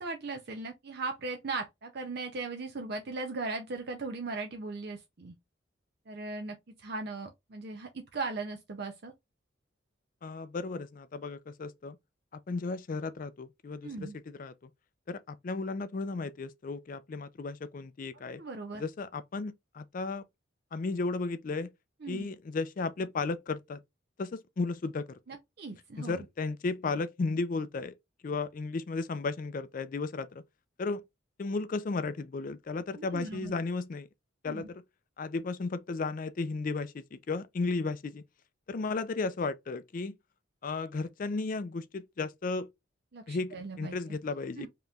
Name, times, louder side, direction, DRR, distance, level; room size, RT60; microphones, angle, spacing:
voice 1, 0.0-5.3 6.1-9.1 13.8-14.1 18.4-18.8 22.0-22.3 25.3-26.2 32.9-33.5 34.4-34.6 43.1-43.9 44.6-44.7, right 3 dB, 55° right, 0.6 m, -38 dB
voice 2, 10.2-12.0 12.3-14.7 15.1-18.4 18.8-20.2 20.7-21.7 22.1-23.8 24.2-25.2 26.0-27.9 28.2-30.4 30.8-31.0 31.4-34.1 34.4-34.8 35.2-38.2 38.7-40.1 40.6-42.7 43.3-44.7, left 3 dB, 45° left, 0.4 m, -34 dB
5.3 x 2.9 x 2.3 m
head